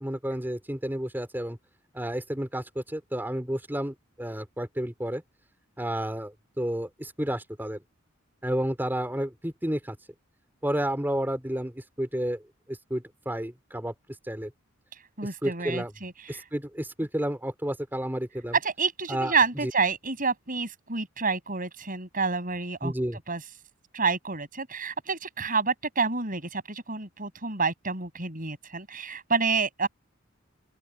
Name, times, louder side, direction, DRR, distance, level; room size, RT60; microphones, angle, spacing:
voice 1, 0.0-1.6 1.9-5.2 5.8-7.8 8.4-10.0 10.6-12.4 12.7-13.9 14.2-14.5 15.4-15.9 16.3-18.5 19.1-19.4 19.6-19.7 22.8-23.2, right 1 dB, 10° right, 4.2 m, -31 dB
voice 2, 15.2-16.4 18.6-22.9 23.3-23.4 23.9-29.9, right 4 dB, 40° right, 7.0 m, -29 dB
open air
head